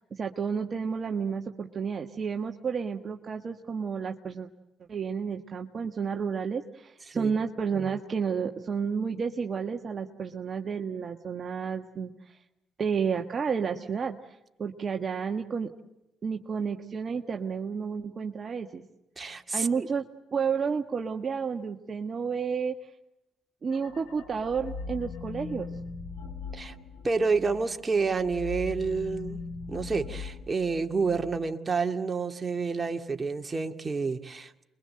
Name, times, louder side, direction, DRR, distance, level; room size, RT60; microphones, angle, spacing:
voice 1, 0.0-4.5 4.9-12.4 12.8-15.7 16.2-18.8 19.5-20.0 20.3-22.7 23.6-25.7, right 6 dB, 45° right, 3 dB, 1.4 m, -31 dB
voice 2, 19.2-19.9 26.5-26.7 27.0-29.4 29.7-34.5, right 4 dB, 30° right, 5 dB, 2.2 m, -29 dB
sound 1, 23.7-27.6 28.0-31.4, left 4 dB, 80° left, 3.4 m, -40 dB
28.5 x 22.5 x 7.8 m, 0.94 s
supercardioid pair, 60°, 0 cm